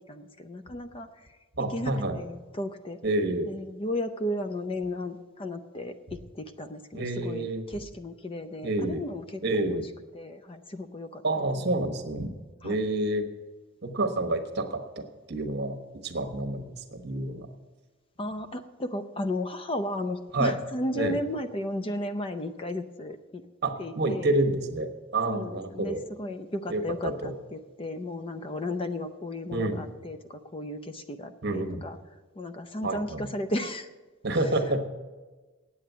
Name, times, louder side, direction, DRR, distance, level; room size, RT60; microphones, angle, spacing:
voice 1, 0.1-1.1 1.7-3.0 3.5-9.8 10.1-11.2 12.6-12.8 18.2-23.4 23.8-24.3 25.3-32.0 32.4-33.9, left 1 dB, 25° left, 10 dB, 0.5 m, -34 dB
voice 2, 1.6-2.2 3.0-3.5 6.9-7.6 8.6-9.0 9.4-9.9 11.2-12.3 12.6-13.3 13.8-15.8 16.0-17.5 20.3-20.6 20.9-21.2 23.6-26.0 26.7-27.3 29.5-29.8 31.4-31.9 32.8-33.3 34.2-34.9, right 2 dB, 55° right, 7 dB, 1.2 m, -28 dB
8.6 x 8.6 x 9.1 m, 1.3 s
head